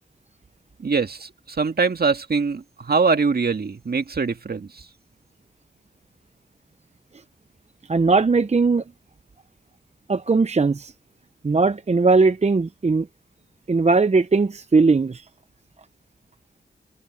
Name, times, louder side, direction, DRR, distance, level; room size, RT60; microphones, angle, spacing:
voice 1, 0.8-4.9, right 4 dB, 55° right, 2.0 m, -23 dB
voice 2, 7.9-8.8 10.1-10.9 11.4-13.1 13.7-15.3, right 4 dB, 35° right, 0.8 m, -19 dB
cardioid pair, 50°, 19 cm